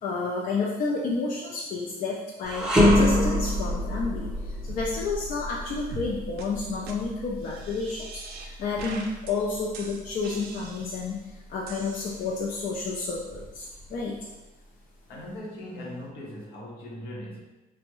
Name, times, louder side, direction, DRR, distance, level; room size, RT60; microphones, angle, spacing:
voice 1, 0.0-2.7 2.9-14.2, left 4 dB, 50° left, -3 dB, 0.4 m, -31 dB
sound 1, 2.4-11.7 12.1-12.3 13.1-14.0, left 1 dB, 5° right, 0.5 m, -27 dB
sound 2, 5.9-6.1 6.4-6.5 6.9-7.0 7.4-8.5 8.8-9.3 9.7-11.1 11.7-12.6, right 4 dB, 70° right, 0.4 m, -43 dB
voice 2, 15.1-17.4, left 1 dB, 75° left, -2 dB, 0.9 m, -39 dB
3.4 x 2.0 x 3.0 m, 1.1 s
cardioid pair, 110°, 17 cm